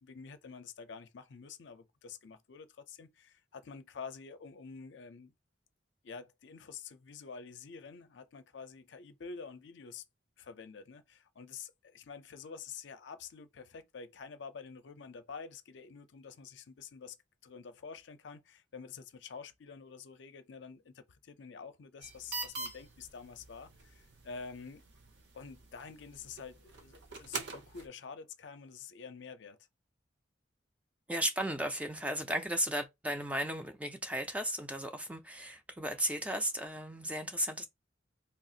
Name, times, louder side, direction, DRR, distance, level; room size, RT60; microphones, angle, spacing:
voice 1, 0.0-5.3 6.0-10.0 10.4-17.2 17.4-24.8 25.3-29.6, left 5 dB, 70° left, 0.5 m, -48 dB
sound 1, 22.0-27.9, right 3 dB, 65° right, 0.7 m, -45 dB
voice 2, 31.1-37.6, right 1 dB, 5° right, 0.3 m, -35 dB
3.3 x 2.4 x 2.7 m
head